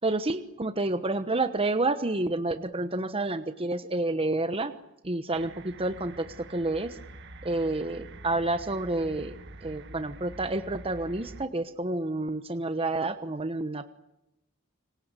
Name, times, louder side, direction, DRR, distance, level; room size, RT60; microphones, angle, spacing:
voice 1, 0.0-4.7 5.0-7.0 7.4-9.4 9.6-13.9, right 2 dB, 25° right, 10 dB, 1.1 m, -29 dB
sound 1, 5.3-11.5, right 2 dB, 55° right, 1.7 m, -46 dB
27.0 x 25.0 x 8.4 m, 0.87 s
head